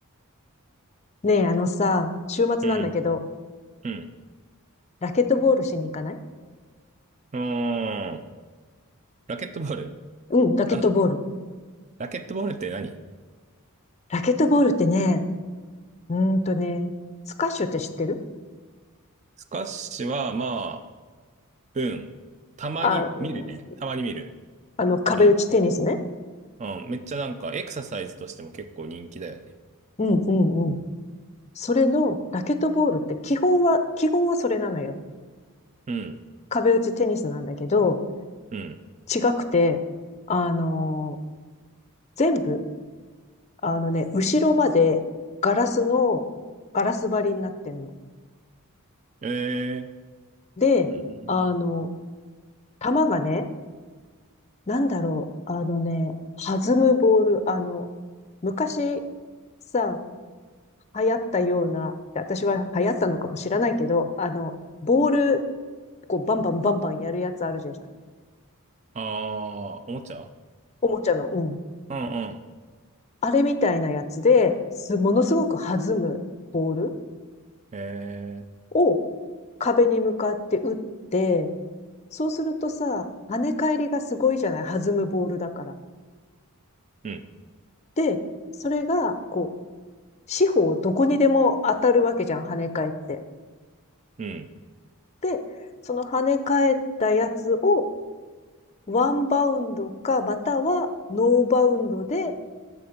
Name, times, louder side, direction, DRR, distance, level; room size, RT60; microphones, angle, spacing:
voice 1, 1.2-3.2 5.0-6.2 10.3-11.2 14.1-15.2 16.1-16.9 17.4-18.2 22.8-23.4 24.8-26.0 30.0-30.8 31.6-35.0 36.5-38.0 39.1-39.8 40.3-41.2 42.2-42.6 43.6-45.0 45.4-46.2 46.7-47.9 50.6-50.9 51.3-51.9 52.8-53.5 54.7-57.8 58.4-59.0 59.7-60.0 60.9-64.5 64.8-65.4 66.1-67.7 70.8-71.6 73.2-74.6 74.8-76.2 76.5-76.9 78.7-79.0 79.6-80.8 81.1-81.5 82.1-85.7 88.0-88.2 88.6-89.5 90.3-93.2 95.2-95.4 95.9-97.9 98.9-102.3, left 3 dB, 30° left, 9 dB, 0.6 m, -23 dB
voice 2, 7.3-8.2 9.3-9.9 10.7-10.8 12.0-13.0 19.5-20.8 21.7-22.1 22.6-24.3 25.2-25.3 26.6-29.5 35.9-36.2 38.5-38.8 49.2-49.9 50.9-51.5 68.9-70.3 71.9-72.4 77.7-78.5 87.0-87.2 94.2-94.5, right 3 dB, 30° right, 9 dB, 0.4 m, -31 dB
12.5 x 4.6 x 5.1 m, 1.5 s
head